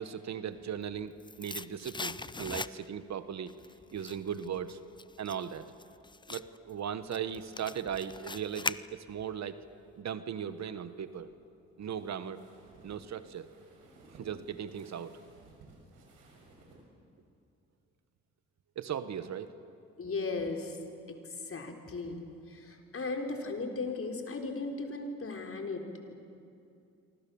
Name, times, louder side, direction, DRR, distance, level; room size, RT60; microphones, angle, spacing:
voice 1, 0.0-3.5 3.9-4.8 5.2-5.7 6.3-9.6 10.0-11.3 11.8-12.4 12.8-13.5 14.2-15.2 18.7-19.5, right 8 dB, 60° right, 12 dB, 1.4 m, -38 dB
sound 1, 0.7-3.1 3.5-9.3 9.7-9.8, left 3 dB, 15° left, 0.6 m, -41 dB
sound 2, 10.5-16.8, right 2 dB, 85° right, 6.5 m, -58 dB
voice 2, 20.0-20.8 21.1-26.1, left 3 dB, 45° left, 3 dB, 4.2 m, -37 dB
27.0 x 24.5 x 7.1 m, 2.5 s
supercardioid pair, 65°, 31 cm